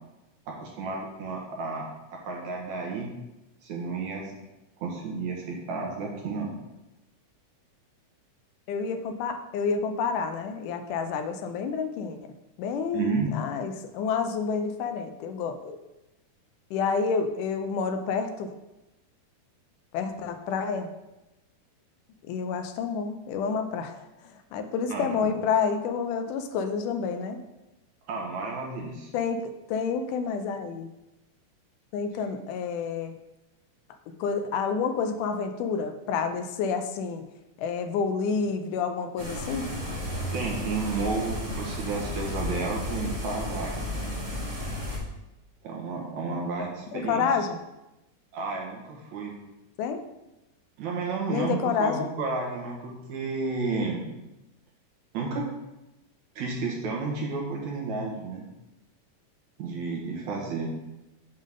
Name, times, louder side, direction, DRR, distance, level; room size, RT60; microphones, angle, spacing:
voice 1, 0.5-3.1 3.6-4.3 4.8-6.5 12.9-13.3 24.9-25.4 28.1-29.1 40.3-43.8 45.6-47.3 48.3-49.4 50.8-54.0 55.1-55.4 56.4-58.5 59.6-60.7, right 4 dB, 65° right, -1 dB, 2.6 m, -32 dB
voice 2, 8.7-12.3 12.6-15.8 16.7-18.5 19.9-20.9 22.2-27.4 29.1-30.9 31.9-33.1 34.2-37.2 37.6-39.7 46.9-47.6 49.8-50.0 51.3-52.1, left 5 dB, 80° left, 7 dB, 2.1 m, -29 dB
sound 1, 39.2-45.0, left 1 dB, 40° right, 1.0 m, -33 dB
7.3 x 3.8 x 6.3 m, 0.97 s
omnidirectional pair, 3.7 m